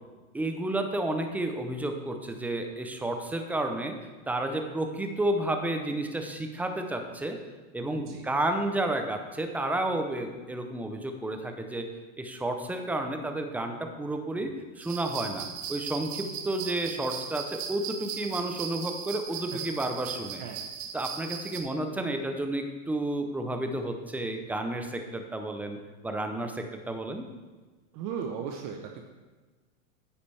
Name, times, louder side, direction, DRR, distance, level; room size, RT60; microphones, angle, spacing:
voice 1, 0.3-4.0 4.3-7.4 7.7-11.9 12.2-20.4 20.9-25.8 26.0-27.2, right 1 dB, 5° right, 5 dB, 0.5 m, -31 dB
voice 2, 7.9-8.3 19.5-19.6 20.4-20.6 27.9-29.1, right 7 dB, 40° right, 3 dB, 0.9 m, -37 dB
sound 1, 14.8-21.6, right 7 dB, 65° right, 1.2 m, -38 dB
9.7 x 8.7 x 3.3 m, 1.3 s
hypercardioid pair, 130°, 41 cm